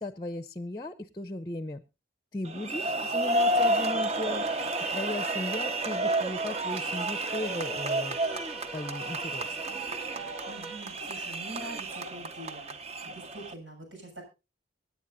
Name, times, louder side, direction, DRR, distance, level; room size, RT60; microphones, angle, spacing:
voice 1, 0.0-1.8 2.3-4.5 4.9-8.2 8.7-9.6, left 2 dB, 20° left, 11 dB, 0.6 m, -36 dB
sound 1, 2.5-13.5, right 1 dB, 35° right, 0.7 m, -31 dB
sound 2, 3.5-11.0, right 4 dB, ahead, 0.9 m, -44 dB
voice 2, 10.5-12.7 13.0-14.2, right 2 dB, 80° right, 2 dB, 7.1 m, -44 dB
25.0 x 9.3 x 2.6 m, 0.28 s
head